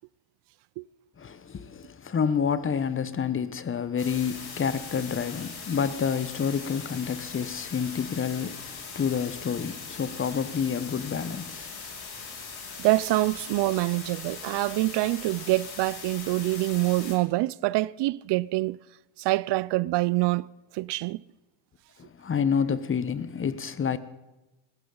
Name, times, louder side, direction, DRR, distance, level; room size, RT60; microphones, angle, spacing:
voice 1, 1.2-11.8 22.0-24.0, left 7 dB, 25° left, 0.9 m, -29 dB
sound 1, 4.0-17.2, left 5 dB, 50° left, 5.1 m, -40 dB
voice 2, 12.8-18.8 19.2-20.5 20.7-21.2, right 19 dB, 60° right, 0.5 m, -25 dB
20.0 x 15.0 x 3.9 m
cardioid pair, 110°, 46 cm